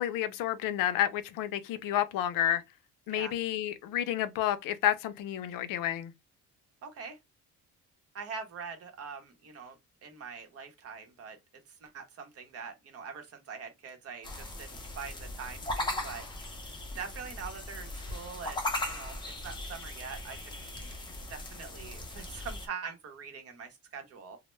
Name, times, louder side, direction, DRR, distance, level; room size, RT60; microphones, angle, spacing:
voice 1, 0.0-2.6 3.1-6.1, left 11 dB, 85° left, 0.5 m, -30 dB
voice 2, 6.8-7.2 8.1-9.8 10.0-11.4 11.7-16.2 17.0-20.9 21.3-24.4, right 6 dB, 45° right, 0.7 m, -43 dB
sound 1, 14.2-22.7, left 1 dB, 15° left, 0.5 m, -38 dB
2.1 x 2.0 x 3.1 m
cardioid pair, 150°, 33 cm